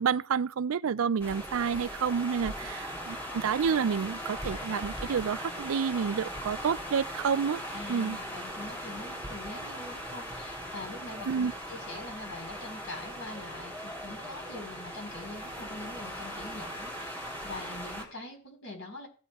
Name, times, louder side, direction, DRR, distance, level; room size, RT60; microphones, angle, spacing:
voice 1, 0.0-7.6 7.9-8.2 11.3-11.5, right 6 dB, 85° right, 0.4 m, -29 dB
sound 1, 1.2-18.0, equal, 10° left, 3.8 m, -39 dB
voice 2, 7.7-19.1, left 2 dB, 65° left, 4.2 m, -44 dB
17.0 x 8.6 x 2.4 m
head